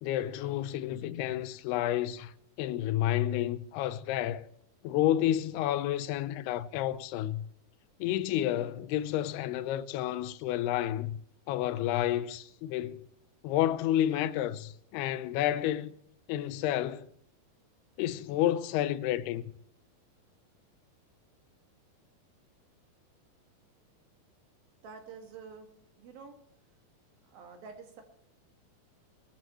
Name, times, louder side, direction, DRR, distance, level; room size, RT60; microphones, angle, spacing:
voice 1, 0.0-2.3 2.6-4.5 4.8-7.4 8.0-11.2 11.5-13.1 13.4-15.9 16.3-17.1 18.0-19.5, left 12 dB, 85° left, 2.7 m, -30 dB
voice 2, 24.8-25.7 26.0-26.3 27.2-28.0, right 5 dB, 65° right, 3.7 m, -48 dB
21.5 x 12.5 x 3.1 m
omnidirectional pair, 4.5 m